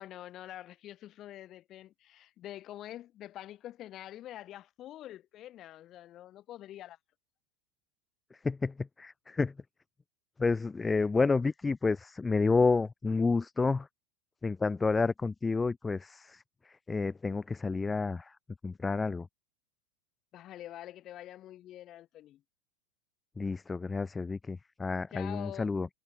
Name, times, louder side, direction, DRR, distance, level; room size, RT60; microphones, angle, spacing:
voice 1, 0.0-7.0 20.3-22.4 25.1-25.7, left 13 dB, 25° left, 6.1 m, -46 dB
voice 2, 8.4-9.5 10.4-13.9 14.4-16.4 16.9-18.3 18.6-19.3 23.4-25.9, left 4 dB, 10° left, 0.7 m, -30 dB
supercardioid pair, 170°, 0 cm